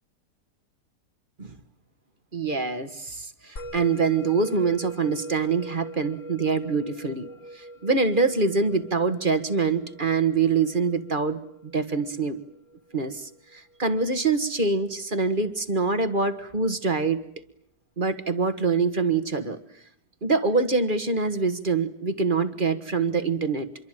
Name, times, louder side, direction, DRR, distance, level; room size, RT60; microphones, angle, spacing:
voice 1, 2.3-7.3 7.5-12.4 12.9-17.2 18.0-19.6 20.2-23.7, right 4 dB, 30° right, 11 dB, 1.6 m, -25 dB
Musical instrument, 3.6-14.2, right 1 dB, 50° left, 2.3 m, -43 dB
26.5 x 23.5 x 9.1 m, 0.67 s
omnidirectional pair, 1.8 m